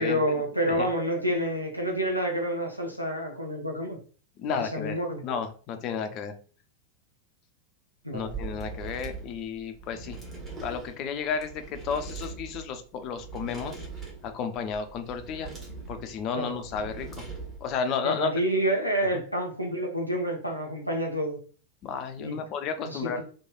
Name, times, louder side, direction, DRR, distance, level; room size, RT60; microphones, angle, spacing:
voice 1, 0.0-4.0 4.6-5.2 8.0-8.3 16.3-16.5 18.0-21.4 22.2-22.4 22.9-23.2, equal, 90° right, 0 dB, 0.5 m, -28 dB
voice 2, 0.7-1.1 4.4-5.0 5.2-6.3 8.1-10.2 10.6-13.9 14.2-15.5 15.9-17.3 17.6-18.3 21.8-23.2, left 6 dB, 40° left, 7 dB, 0.4 m, -32 dB
sound 1, 8.2-17.8, right 4 dB, 20° right, 1.1 m, -41 dB
3.0 x 2.2 x 2.3 m, 0.39 s
figure-of-eight pair, 90°, 0 cm